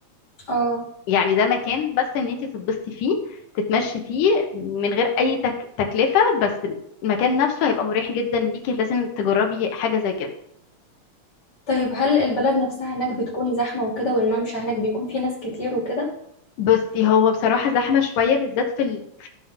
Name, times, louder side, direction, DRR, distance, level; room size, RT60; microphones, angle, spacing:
voice 1, 0.5-0.8 11.7-16.1, left 1 dB, 35° left, -3 dB, 3.3 m, -23 dB
voice 2, 1.1-3.2 3.7-5.5 5.9-10.3 16.6-19.3, left 6 dB, 75° left, 3 dB, 2.8 m, -22 dB
14.5 x 5.8 x 3.7 m, 0.74 s
omnidirectional pair, 3.7 m